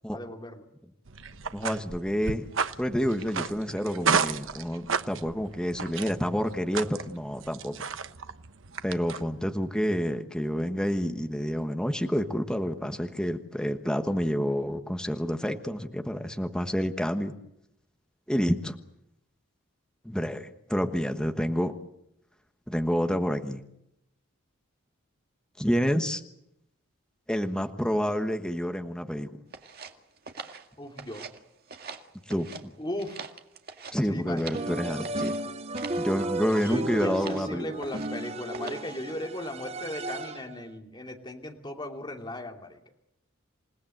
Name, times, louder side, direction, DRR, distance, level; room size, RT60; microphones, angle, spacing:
voice 1, 0.1-0.6 30.8-31.3 32.8-33.2 34.1-34.5 36.5-42.8, left 1 dB, 20° left, 3 dB, 2.8 m, -37 dB
sound 1, 1.1-9.5, right 5 dB, 65° right, 1.1 m, -33 dB
voice 2, 1.5-2.4 2.8-7.8 8.8-17.3 18.3-18.8 20.0-21.7 22.7-23.6 25.6-26.2 27.3-29.3 32.3-32.7 33.9-35.4 36.0-37.7, equal, 5° left, 6 dB, 1.3 m, -28 dB
sound 2, 29.5-31.4 31.7-32.6 33.0-34.7 35.0-35.4 35.7-36.1 36.4-36.7 37.1-37.5 37.8-38.2 38.5-38.9, right 5 dB, 50° right, 2.0 m, -43 dB
sound 3, 34.5-40.6, right 2 dB, 30° right, 0.9 m, -34 dB
28.0 x 18.5 x 7.9 m, 0.79 s
head